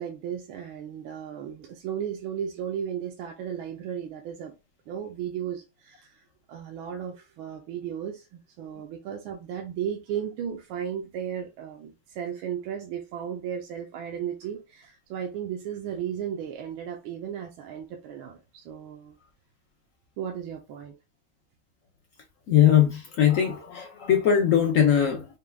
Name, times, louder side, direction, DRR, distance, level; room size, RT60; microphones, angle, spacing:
voice 1, 0.0-4.6 4.9-19.1 20.2-20.9, right 9 dB, 80° right, 1.5 m, -35 dB
voice 2, 22.5-25.3, left 9 dB, 75° left, 0.7 m, -20 dB
4.8 x 2.2 x 3.3 m
omnidirectional pair, 2.2 m